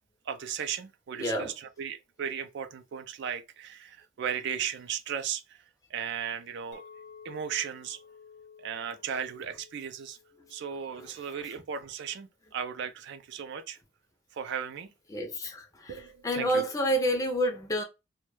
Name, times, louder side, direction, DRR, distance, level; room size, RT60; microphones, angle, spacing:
voice 1, 0.3-5.6 5.9-6.8 7.2-8.0 8.6-10.2 10.5-13.8 14.3-14.9 15.9-16.6, right 8 dB, 60° right, 0.3 m, -36 dB
voice 2, 1.2-1.5 15.1-17.8, equal, 15° left, 0.4 m, -29 dB
Chink clink, 6.7-11.9, left 6 dB, 60° left, 0.7 m, -54 dB
2.2 x 2.1 x 3.0 m
head